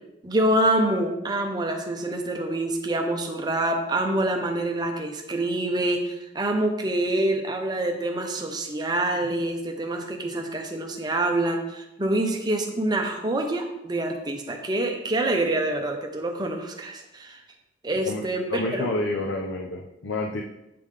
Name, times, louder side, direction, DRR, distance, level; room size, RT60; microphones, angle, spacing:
voice 1, 0.2-17.4 17.8-18.9, right 1 dB, 20° right, 3 dB, 0.7 m, -26 dB
voice 2, 18.5-20.4, left 2 dB, 85° left, 1 dB, 0.6 m, -29 dB
8.5 x 3.7 x 3.3 m, 0.90 s
head